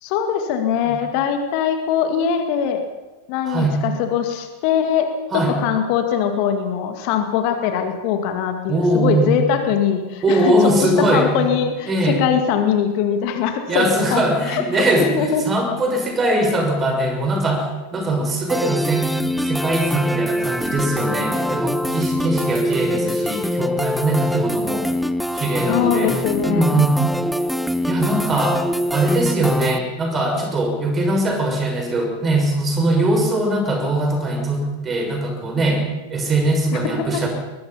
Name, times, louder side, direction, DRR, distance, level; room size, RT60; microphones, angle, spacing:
voice 1, 0.0-2.8 3.3-10.6 10.8-15.4 25.7-26.8 36.7-37.3, left 8 dB, 45° left, 6 dB, 2.2 m, -22 dB
voice 2, 8.7-9.5 10.2-11.5 11.9-12.2 13.7-17.7 17.9-24.9 25.3-26.1 26.5-27.0 27.8-28.6 28.9-35.8 36.1-37.3, right 1 dB, 20° right, 4 dB, 6.3 m, -21 dB
sound 1, 18.5-29.8, equal, ahead, 0.8 m, -24 dB
22.5 x 22.0 x 5.7 m, 1.2 s
figure-of-eight pair, 90°, 0 cm